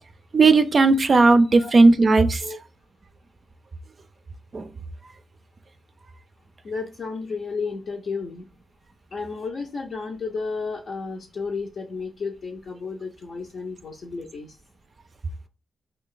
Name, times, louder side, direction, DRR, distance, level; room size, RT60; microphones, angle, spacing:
voice 1, 0.3-2.4 4.5-4.6, right 3 dB, 50° right, 0.3 m, -16 dB
voice 2, 6.6-8.4 9.1-14.5, left 4 dB, 65° left, 0.6 m, -32 dB
2.4 x 2.3 x 3.7 m
supercardioid pair, 50°, 0 cm